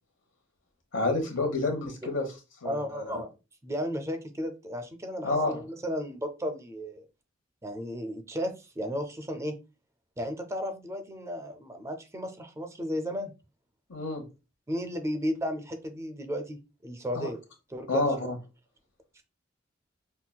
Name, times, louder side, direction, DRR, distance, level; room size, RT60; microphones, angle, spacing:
voice 1, 0.9-2.3 2.6-3.1 5.2-5.6 13.9-14.2 17.1-17.3 17.9-18.4, left 2 dB, 85° left, 1.0 m, -29 dB
voice 2, 2.6-3.3 3.6-7.1 7.6-9.6 10.2-13.3 14.7-17.4 17.7-18.3, equal, 15° right, 0.4 m, -34 dB
5.6 x 2.2 x 2.2 m
head